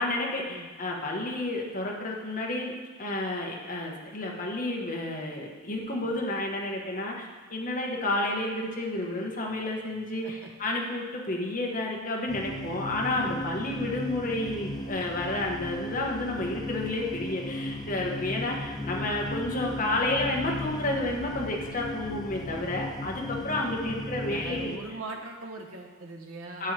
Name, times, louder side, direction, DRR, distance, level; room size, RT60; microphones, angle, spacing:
voice 1, 0.0-2.7 3.0-24.8 26.6-26.7, left 2 dB, 40° left, -1 dB, 1.4 m, -31 dB
sound 1, 12.3-24.8, left 1 dB, 20° left, 0.5 m, -36 dB
voice 2, 23.9-26.7, right 2 dB, 75° right, 2 dB, 1.1 m, -41 dB
9.9 x 7.0 x 3.4 m, 1.4 s
head